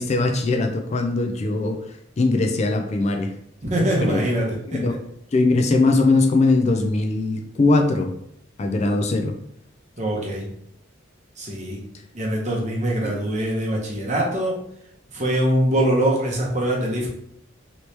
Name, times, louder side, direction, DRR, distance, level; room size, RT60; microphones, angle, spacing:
voice 1, 0.0-1.8 2.2-3.3 4.0-4.2 4.7-5.0 5.3-8.1 8.6-9.4 13.0-13.2, left 2 dB, 35° left, 5 dB, 0.3 m, -20 dB
voice 2, 3.6-5.0 10.0-10.5 11.4-11.8 12.1-14.6 15.1-17.1, right 1 dB, 35° right, -2 dB, 0.8 m, -23 dB
3.2 x 3.0 x 2.8 m, 0.70 s
head